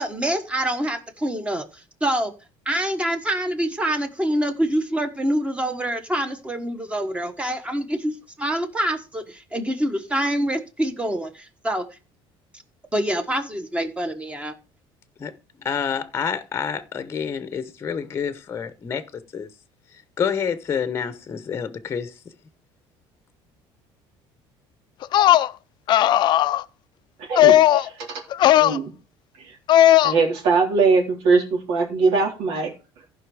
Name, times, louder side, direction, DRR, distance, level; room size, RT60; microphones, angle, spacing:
voice 1, 0.0-2.3 2.6-11.8 12.9-14.5, right 1 dB, 10° right, 1.4 m, -26 dB
voice 2, 15.6-19.5 20.2-22.1, left 7 dB, 25° left, 0.9 m, -28 dB
sound 1, 25.0-25.5 25.9-26.6 27.4-27.9 28.3-28.8 29.7-30.1, left 12 dB, 45° left, 0.5 m, -15 dB
voice 3, 27.2-28.2 28.6-28.9 29.4-29.6 30.0-32.7, right 4 dB, 80° right, 3.8 m, -21 dB
15.0 x 5.5 x 4.9 m
cardioid pair, 145°, 10 cm